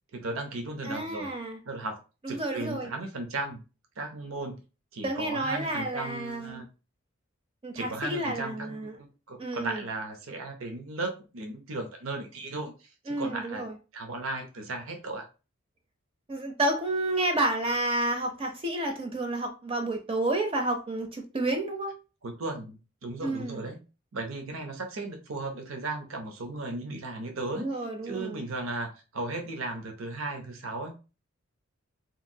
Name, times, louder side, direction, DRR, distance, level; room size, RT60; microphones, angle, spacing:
voice 1, 0.1-1.3 1.6-2.0 2.3-3.6 4.0-4.6 4.9-6.7 7.7-8.8 9.3-13.7 13.9-15.3 22.2-23.8 24.1-30.9, right 2 dB, 80° right, 4 dB, 0.7 m, -36 dB
voice 2, 0.8-1.6 2.2-2.9 5.0-6.6 7.6-8.9 9.4-9.8 13.1-13.7 16.3-21.9 23.2-23.7 27.5-28.4, right 2 dB, 25° right, 3 dB, 0.5 m, -30 dB
2.9 x 2.5 x 2.6 m, 0.31 s
head